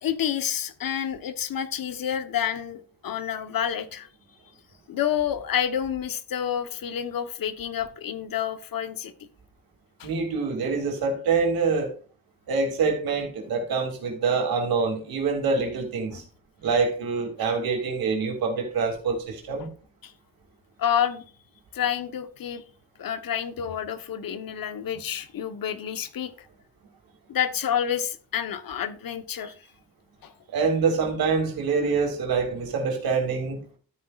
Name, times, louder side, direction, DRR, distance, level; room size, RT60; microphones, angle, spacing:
voice 1, 0.0-4.1 4.9-9.1 10.0-10.1 16.1-16.2 20.0-20.1 20.8-21.2 21.7-22.6 23.0-26.3 27.3-29.5 30.2-30.3, left 9 dB, 70° left, 1.3 m, -29 dB
voice 2, 10.0-11.9 12.5-16.2 16.6-19.7 30.5-33.6, right 4 dB, 85° right, 3.0 m, -25 dB
13.0 x 9.5 x 2.5 m
supercardioid pair, 50°, 35 cm